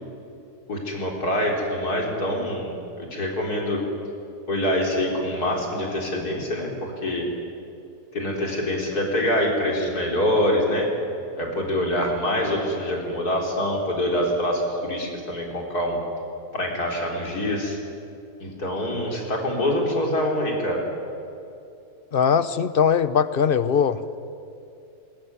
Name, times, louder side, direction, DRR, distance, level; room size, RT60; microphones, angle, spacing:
voice 1, 0.7-3.8 4.5-7.3 8.1-10.8 11.4-16.0 16.5-17.8 18.4-20.8, left 1 dB, 80° left, 0 dB, 4.5 m, -25 dB
voice 2, 22.1-24.0, left 7 dB, 45° left, 14 dB, 0.8 m, -20 dB
20.5 x 20.0 x 9.5 m, 2.7 s
omnidirectional pair, 1.6 m